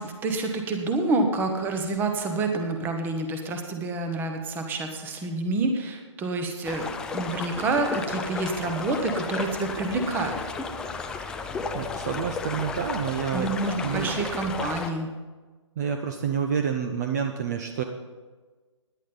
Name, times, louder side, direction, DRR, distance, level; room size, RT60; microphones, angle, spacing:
voice 1, 0.0-10.4 13.3-15.1, right 3 dB, 10° right, 5 dB, 1.2 m, -28 dB
sound 1, 6.6-14.9, left 4 dB, 5° left, 0.4 m, -33 dB
voice 2, 11.7-13.5 13.8-14.2 15.8-17.8, right 7 dB, 35° right, 6 dB, 0.9 m, -28 dB
17.0 x 10.5 x 4.0 m, 1.3 s
figure-of-eight pair, 140°, 16 cm